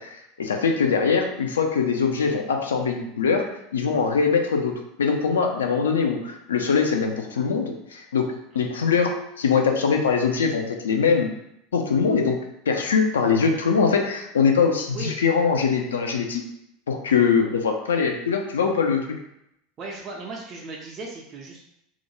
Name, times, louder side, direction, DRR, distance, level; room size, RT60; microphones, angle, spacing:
voice 1, 0.0-11.3 11.7-12.4 12.7-16.4 16.9-19.1, left 5 dB, 75° left, 4 dB, 0.3 m, -22 dB
voice 2, 19.8-21.6, right 2 dB, 35° right, -1 dB, 0.4 m, -36 dB
2.4 x 2.1 x 2.9 m, 0.80 s
figure-of-eight pair, 75°, 0 cm